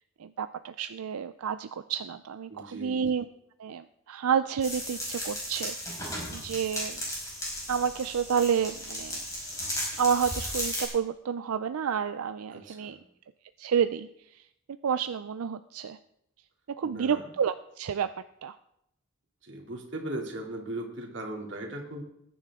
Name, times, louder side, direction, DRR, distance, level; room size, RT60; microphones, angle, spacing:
voice 1, 0.2-3.2 3.6-7.0 7.7-9.2 10.0-13.0 13.6-14.5 14.8-16.0 16.8-18.1 18.4-18.6, right 7 dB, 90° right, 11 dB, 0.4 m, -30 dB
voice 2, 2.5-3.0 12.5-13.0 16.9-17.2 19.4-22.0, right 1 dB, 55° right, 1 dB, 2.6 m, -38 dB
sound 1, 4.6-10.9, left 1 dB, 15° left, 5.0 m, -35 dB
20.5 x 10.0 x 3.6 m, 0.78 s
head